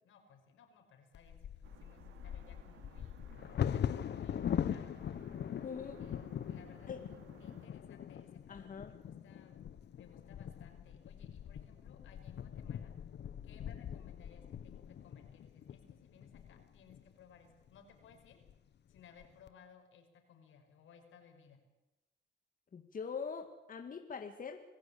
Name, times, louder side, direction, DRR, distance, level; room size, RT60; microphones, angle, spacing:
voice 1, 0.0-3.1 3.7-5.2 5.7-7.1 7.4-8.7 9.0-9.6 10.0-12.9 13.4-18.4 18.9-21.6, left 6 dB, 80° left, 4 dB, 5.6 m, -61 dB
Bird vocalization bird call bird song / Wind / Thunder, 1.1-17.0 17.7-17.8 18.1-18.5 19.0-19.5, left 9 dB, 60° left, 1.2 m, -41 dB
sound 1, 1.6-7.7, right 9 dB, 85° right, 2.6 m, -60 dB
voice 2, 5.6-6.0 6.9-7.1 8.5-8.9 22.7-24.6, left 6 dB, 45° left, 5 dB, 2.1 m, -43 dB
26.5 x 15.5 x 8.6 m, 1.0 s
cardioid pair, 90°, 20 cm